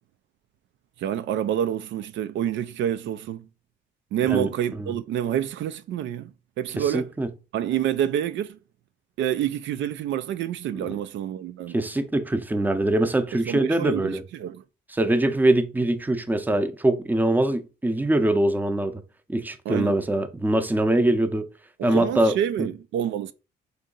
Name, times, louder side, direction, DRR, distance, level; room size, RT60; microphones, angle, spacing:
voice 1, 1.0-3.5 4.1-6.3 6.6-7.1 7.5-8.6 9.2-11.8 13.5-14.6 19.7-20.0 21.8-23.3, right 10 dB, 70° right, 0.4 m, -27 dB
voice 2, 4.3-5.0 6.8-7.3 10.9-11.0 11.7-14.2 14.9-19.0 19.3-21.5 21.8-22.4, right 1 dB, 10° right, 0.6 m, -23 dB
3.9 x 2.7 x 3.8 m
cardioid pair, 90°, 20 cm